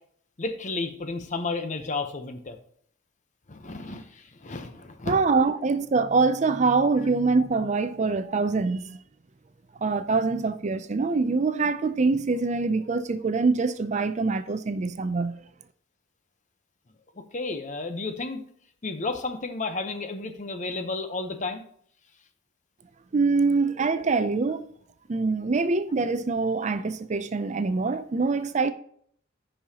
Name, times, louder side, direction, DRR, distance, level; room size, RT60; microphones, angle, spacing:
voice 1, 0.4-2.6 3.5-5.2 17.3-18.4 18.8-21.6, left 3 dB, 40° left, 0.8 m, -32 dB
voice 2, 5.1-9.0 9.8-15.4 23.1-24.7 25.1-28.7, right 4 dB, 35° right, 0.4 m, -24 dB
14.5 x 5.5 x 2.9 m
head